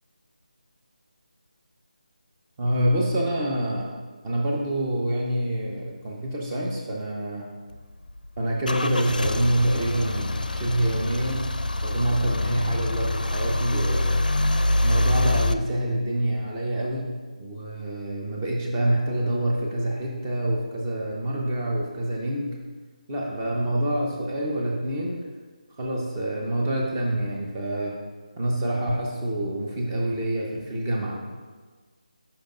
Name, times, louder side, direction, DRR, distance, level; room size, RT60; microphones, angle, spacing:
voice 1, 2.6-4.0 4.2-7.5 8.4-11.5 11.8-14.2 14.8-17.1 17.4-22.6 23.1-25.2 25.8-28.0 28.4-31.2, right 1 dB, 20° right, -2 dB, 1.0 m, -26 dB
Car / Engine starting / Idling, 7.7-15.5, left 2 dB, 85° left, 0.4 m, -25 dB
10.0 x 5.7 x 2.6 m, 1.4 s
figure-of-eight pair, 160°, 4 cm